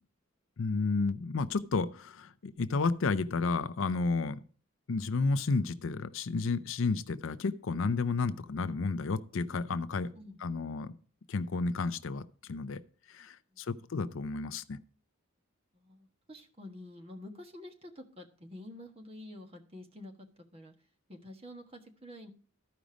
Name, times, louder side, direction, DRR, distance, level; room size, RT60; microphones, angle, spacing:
voice 1, 0.6-4.4 4.9-10.1 10.4-10.9 11.3-12.8 13.1-14.8, left 4 dB, 65° left, 13 dB, 0.5 m, -31 dB
voice 2, 13.5-13.9 15.7-20.7 21.1-22.3, left 1 dB, 25° right, 3 dB, 1.3 m, -49 dB
13.5 x 5.1 x 5.0 m, 0.41 s
head